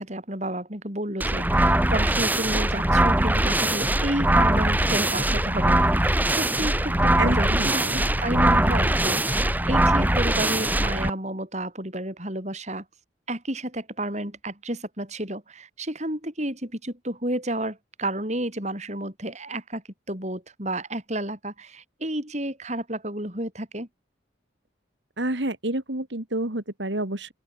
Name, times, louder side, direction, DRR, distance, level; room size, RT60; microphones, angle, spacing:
voice 1, 0.0-12.9 13.3-23.9, right 1 dB, 35° right, 7.1 m, -31 dB
sound 1, 1.2-11.1, right 1 dB, 10° right, 2.4 m, -22 dB
voice 2, 7.2-8.0 25.2-27.3, right 1 dB, 70° right, 2.6 m, -29 dB
open air
head